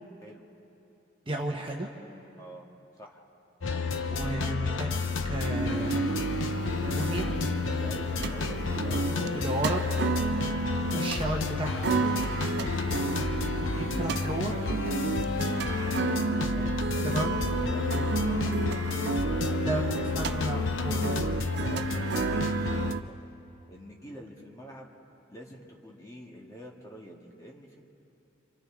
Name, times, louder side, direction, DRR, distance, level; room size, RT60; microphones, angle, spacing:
voice 1, 1.3-1.9 4.1-4.9 5.2-6.0 6.9-7.3 9.3-9.8 10.9-12.0 13.6-14.6 17.0-17.4 19.6-20.6 20.8-21.0, right 2 dB, 25° right, 0 dB, 1.3 m, -33 dB
voice 2, 3.0-3.3 6.9-7.3 7.7-10.2 10.9-11.4 12.5-12.9 16.4-18.9 19.3-20.7 21.2-23.2 23.7-24.9 25.3-27.8, equal, 15° left, -2 dB, 1.7 m, -47 dB
sound 1, 3.6-22.9, left 4 dB, 80° left, 0.8 m, -30 dB
sound 2, 5.4-23.0, right 5 dB, 55° right, 0.4 m, -32 dB
sound 3, 8.5-20.5, left 1 dB, 35° left, 4.3 m, -50 dB
29.0 x 25.5 x 3.8 m, 2.8 s
head